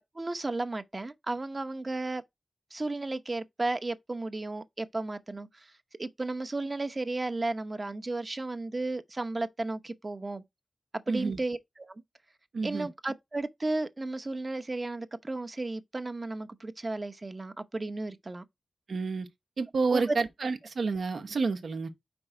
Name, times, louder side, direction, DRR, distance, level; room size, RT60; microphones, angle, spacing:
voice 1, 0.1-2.2 2.7-5.7 6.0-10.4 11.1-12.0 12.6-18.4 19.9-20.2, right 2 dB, 40° right, 0.8 m, -34 dB
voice 2, 11.1-11.4 12.5-12.9 18.9-19.3 19.6-21.9, right 4 dB, 85° right, 1.0 m, -29 dB
5.3 x 4.0 x 4.5 m
cardioid pair, 55°, 0 cm